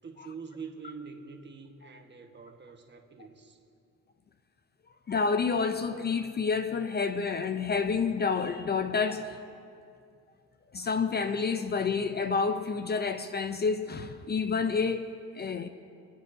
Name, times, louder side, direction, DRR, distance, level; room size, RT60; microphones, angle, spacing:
voice 1, 0.0-3.6, right 5 dB, 35° right, 1.3 m, -45 dB
voice 2, 5.1-9.4 10.7-15.7, left 5 dB, 35° left, 0.6 m, -29 dB
28.0 x 9.6 x 2.7 m
cardioid pair, 90°, 30 cm